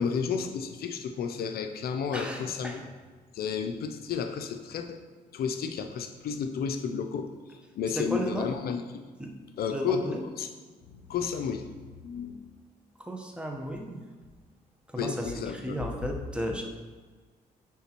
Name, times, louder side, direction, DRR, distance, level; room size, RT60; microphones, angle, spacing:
voice 1, 0.0-2.9 3.3-5.0 5.3-8.8 9.6-10.5 10.9-11.7 12.0-12.4 15.0-15.8, left 6 dB, 70° left, 6 dB, 0.5 m, -32 dB
voice 2, 2.1-2.8 8.0-8.5 9.2-9.3 9.7-10.3 13.0-14.0 14.9-16.7, right 1 dB, 5° right, 1 dB, 1.0 m, -34 dB
10.0 x 3.6 x 3.0 m, 1.4 s
cardioid pair, 80°, 16 cm